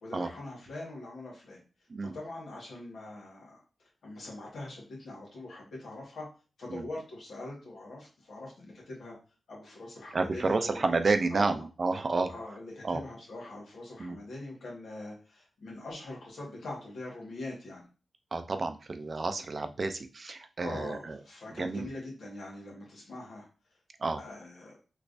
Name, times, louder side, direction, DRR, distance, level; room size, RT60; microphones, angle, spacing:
voice 1, 0.0-1.6 2.0-3.6 4.0-6.3 6.6-9.1 9.5-10.8 11.3-11.6 12.3-17.9 20.6-23.5 24.2-24.8, left 2 dB, 90° left, -2 dB, 1.4 m, -43 dB
voice 2, 10.1-12.3 12.8-13.0 14.0-14.2 18.3-21.2 21.5-21.9 24.0-24.2, right 3 dB, 50° right, 8 dB, 0.4 m, -30 dB
3.3 x 3.0 x 2.5 m, 0.33 s
wide cardioid pair, 85°, 0 cm